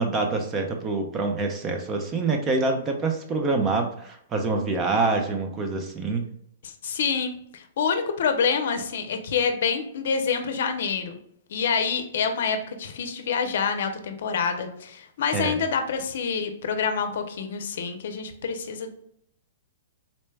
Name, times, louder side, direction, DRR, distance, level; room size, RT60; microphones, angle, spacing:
voice 1, 0.0-6.2 15.3-15.6, right 3 dB, 20° right, 4 dB, 0.5 m, -26 dB
voice 2, 6.6-11.1 11.5-18.9, left 6 dB, 65° left, 7 dB, 0.6 m, -27 dB
4.0 x 2.2 x 3.3 m, 0.69 s
hypercardioid pair, 160°, 0 cm